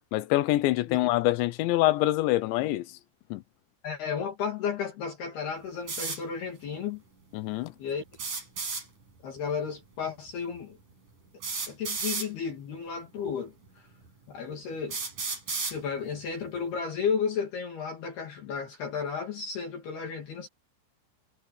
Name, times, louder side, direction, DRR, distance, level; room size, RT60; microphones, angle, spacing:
voice 1, 0.1-2.9 3.3-3.4 7.3-7.7, left 16 dB, 75° left, 2.9 m, -25 dB
voice 2, 3.8-7.0 7.8-8.0 9.2-10.8 11.7-13.9 14.3-15.0 15.6-20.5, left 6 dB, 55° left, 4.3 m, -33 dB
sound 1, 5.9-6.2 8.1-8.8 10.3-10.4 11.4-12.3 13.3-13.4 14.1-14.2 14.9-15.8, right 4 dB, 40° right, 7.4 m, -32 dB
omnidirectional pair, 5.7 m